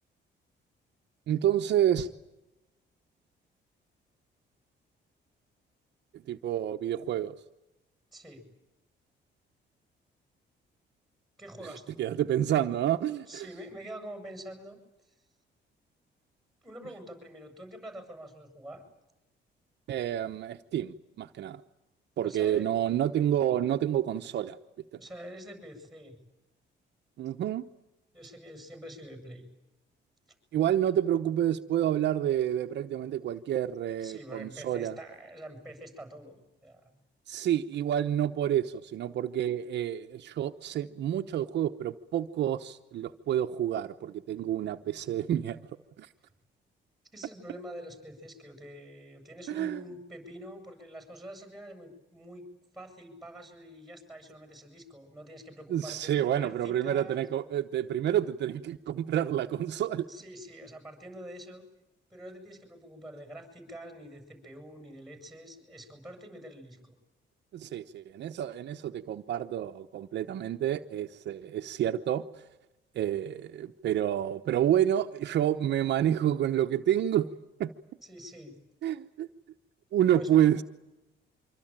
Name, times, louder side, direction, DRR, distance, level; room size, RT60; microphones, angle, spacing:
voice 1, 1.3-2.1 6.3-7.4 12.0-13.5 19.9-21.6 22.2-24.6 27.2-27.6 30.5-35.0 37.3-45.6 46.0-46.1 49.5-49.8 55.7-60.1 67.5-72.2 72.9-77.3 77.6-77.7 78.8-79.3 79.9-80.6, right 11 dB, 65° right, 1.0 m, -28 dB
voice 2, 8.1-8.5 11.4-12.0 13.3-15.1 16.6-18.8 22.2-22.7 25.0-26.2 28.1-29.5 34.0-36.9 47.1-52.5 52.7-57.2 60.1-61.6 62.1-66.9 78.0-78.6 80.1-80.4, equal, ahead, 7.8 m, -46 dB
25.5 x 24.5 x 9.0 m
cardioid pair, 165°, 19 cm